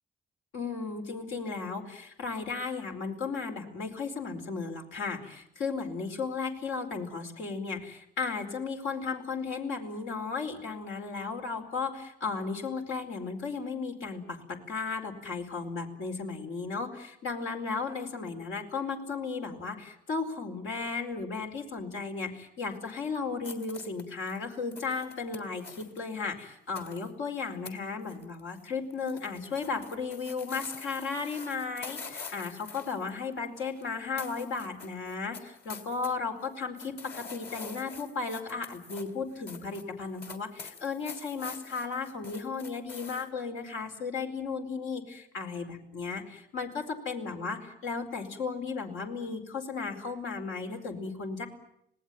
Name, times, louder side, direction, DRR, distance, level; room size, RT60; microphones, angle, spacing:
voice 1, 0.5-51.5, left 4 dB, 85° left, 3 dB, 4.6 m, -35 dB
sound 1, 23.4-26.0 26.7-27.1 27.6-27.8 28.0-28.6 28.9-33.9 34.2-36.1 36.4-43.3, left 5 dB, 55° left, 3.6 m, -46 dB
26.5 x 19.0 x 9.3 m, 0.76 s
cardioid pair, 90°, 20 cm